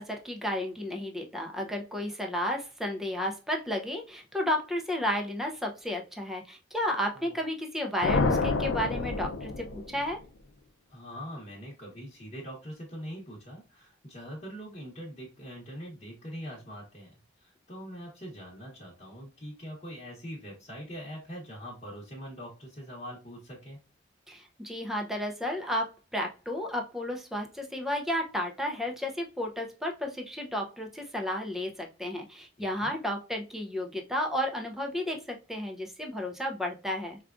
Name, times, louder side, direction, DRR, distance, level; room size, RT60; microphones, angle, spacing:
voice 1, 0.0-10.2 24.3-37.2, left 1 dB, ahead, 1 dB, 0.5 m, -32 dB
sound 1, 8.0-10.3, left 3 dB, 75° left, 0.5 m, -28 dB
voice 2, 10.9-23.8 32.6-33.0, equal, 35° left, -6 dB, 1.0 m, -43 dB
4.8 x 2.3 x 2.4 m, 0.32 s
head